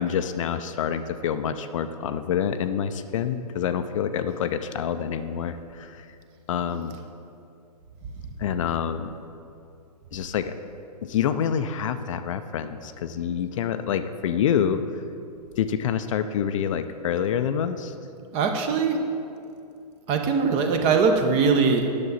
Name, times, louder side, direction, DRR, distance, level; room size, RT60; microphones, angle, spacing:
voice 1, 0.0-6.1 6.5-7.0 8.4-9.1 10.1-10.5 11.0-14.8 15.6-17.9, left 8 dB, 50° left, 10 dB, 0.4 m, -27 dB
voice 2, 18.3-19.0 20.1-22.0, right 5 dB, 30° right, 5 dB, 0.8 m, -21 dB
9.6 x 6.8 x 4.1 m, 2.5 s
hypercardioid pair, 125°, 21 cm